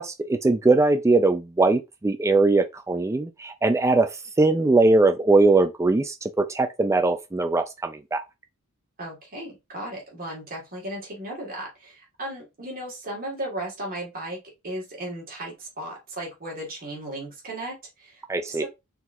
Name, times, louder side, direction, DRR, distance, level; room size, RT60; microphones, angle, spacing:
voice 1, 0.0-4.1 4.4-8.2 18.3-18.7, right 3 dB, 15° right, 0.3 m, -21 dB
voice 2, 9.0-18.2 18.5-18.7, right 1 dB, 40° right, 2.0 m, -35 dB
4.5 x 4.0 x 2.7 m
head